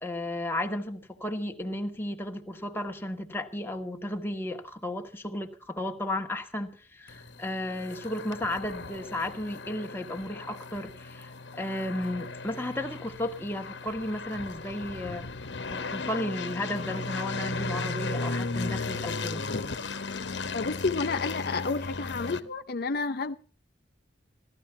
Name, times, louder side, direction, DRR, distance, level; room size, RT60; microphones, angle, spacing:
voice 1, 0.0-15.3 15.7-19.5, left 1 dB, 15° left, 1.5 m, -34 dB
sound 1, 7.1-22.4, left 3 dB, 75° left, 1.2 m, -36 dB
voice 2, 20.5-23.3, left 4 dB, 60° left, 0.7 m, -30 dB
17.0 x 13.0 x 5.8 m
head